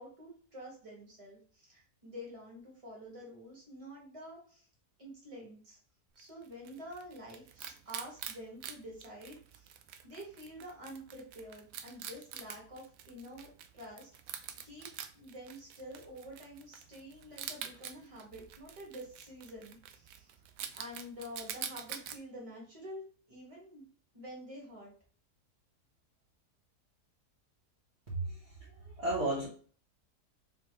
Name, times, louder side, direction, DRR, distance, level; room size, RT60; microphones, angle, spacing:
voice 1, 0.0-4.7 5.0-5.8 6.2-9.7 10.0-20.3 20.7-23.0 23.3-23.8 24.1-24.9, equal, 20° right, -3 dB, 1.8 m, -48 dB
Wild animals, 6.2-22.2, right 9 dB, 70° right, 0.9 m, -47 dB
voice 2, 28.1-29.5, right 2 dB, 45° right, -6 dB, 1.4 m, -34 dB
4.3 x 3.8 x 3.1 m, 0.43 s
omnidirectional pair, 1.7 m